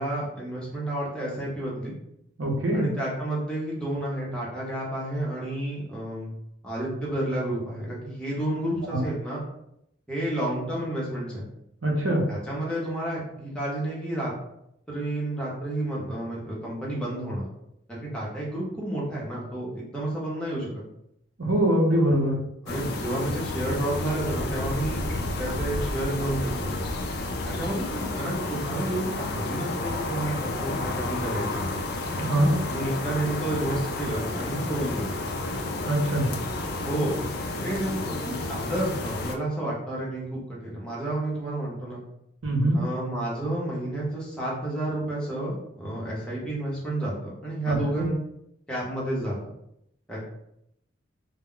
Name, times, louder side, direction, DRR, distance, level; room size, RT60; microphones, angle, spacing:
voice 1, 0.0-1.9 2.7-6.3 6.6-9.4 10.1-11.4 12.3-14.3 14.9-17.4 17.9-20.8 22.6-26.7 27.4-31.7 32.6-35.1 36.8-37.2 37.6-42.0 42.7-48.2 48.7-49.4 50.1-50.2, right 1 dB, 5° left, -6 dB, 0.7 m, -30 dB
voice 2, 2.4-2.9 8.9-9.0 11.8-12.2 21.4-22.4 32.2-32.5 35.8-36.3 42.4-42.8 47.7-48.1, right 1 dB, 80° right, -1 dB, 0.8 m, -23 dB
City Skyline Rooftops Noisy London, 22.7-39.4, left 2 dB, 50° left, 0.3 m, -31 dB
2.2 x 2.1 x 3.6 m, 0.79 s
head